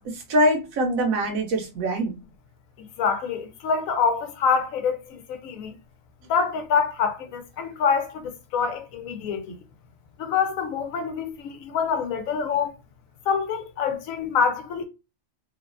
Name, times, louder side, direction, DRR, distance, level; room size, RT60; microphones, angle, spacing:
voice 1, 0.1-2.1, equal, 80° right, 1.2 m, -23 dB
voice 2, 3.0-5.7 6.3-9.6 10.2-12.7 13.3-14.9, left 6 dB, 80° left, 1.0 m, -26 dB
3.1 x 2.2 x 2.4 m
omnidirectional pair, 1.4 m